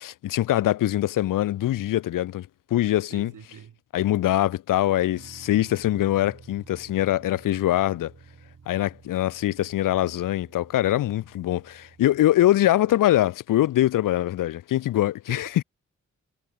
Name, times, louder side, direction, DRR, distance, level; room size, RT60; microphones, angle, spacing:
voice 1, 0.0-3.3 3.9-8.1 8.7-15.5, left 14 dB, 85° left, 0.5 m, -23 dB
voice 2, 3.1-3.8 12.9-13.0 15.3-15.6, right 9 dB, 80° right, 1.4 m, -45 dB
sound 1, 5.2-12.2, right 5 dB, 50° right, 2.1 m, -51 dB
cardioid pair, 45°, 31 cm